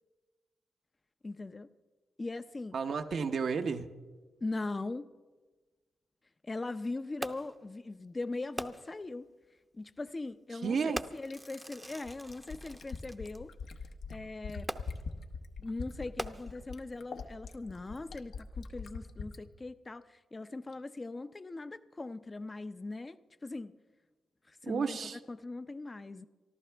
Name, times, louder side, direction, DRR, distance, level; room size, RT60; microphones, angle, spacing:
voice 1, 1.2-1.7 2.2-2.8 4.4-5.1 6.4-9.3 9.7-13.5 14.1-14.7 15.6-23.2 23.4-23.7 24.5-25.0 25.3-26.3, left 2 dB, 25° left, 0.6 m, -40 dB
voice 2, 2.7-3.9 10.5-11.0 24.6-25.2, right 5 dB, 60° right, 0.8 m, -32 dB
Fireworks, 7.2-7.6 8.6-9.1 10.0-10.1 10.9-13.4 14.7-15.2 16.0-16.8 17.5-17.6, right 1 dB, 10° right, 0.7 m, -42 dB
Fill (with liquid), 11.3-19.4 20.7-20.8, left 5 dB, 75° left, 1.0 m, -42 dB
24.5 x 14.0 x 3.4 m
cardioid pair, 90°, 0 cm